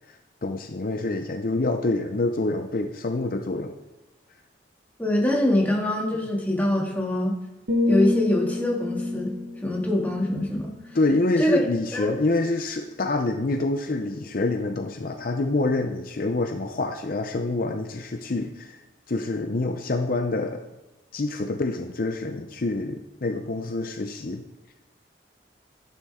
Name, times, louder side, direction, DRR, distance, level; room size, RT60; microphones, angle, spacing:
voice 1, 0.4-3.7 10.9-18.8 19.1-20.6 21.1-24.4, left 2 dB, 50° left, 6 dB, 0.6 m, -26 dB
voice 2, 5.0-7.3 7.9-9.3 9.6-10.7 11.4-11.6 11.9-12.1, left 1 dB, 10° left, -3 dB, 2.3 m, -24 dB
sound 1, 7.7-11.7 12.0-12.3, left 2 dB, 75° right, 1.3 m, -29 dB
12.0 x 11.0 x 3.7 m, 0.98 s
head